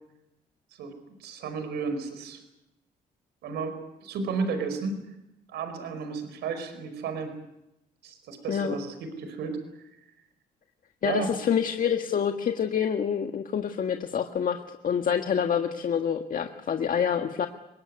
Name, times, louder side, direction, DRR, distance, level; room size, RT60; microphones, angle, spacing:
voice 1, 1.2-2.4 3.4-5.0 5.5-7.3 8.0-9.6 11.0-11.3, right 5 dB, 85° right, 9 dB, 4.9 m, -33 dB
voice 2, 11.0-17.5, left 7 dB, 55° left, 5 dB, 1.7 m, -27 dB
24.0 x 20.0 x 9.6 m, 0.89 s
cardioid pair, 70°, 17 cm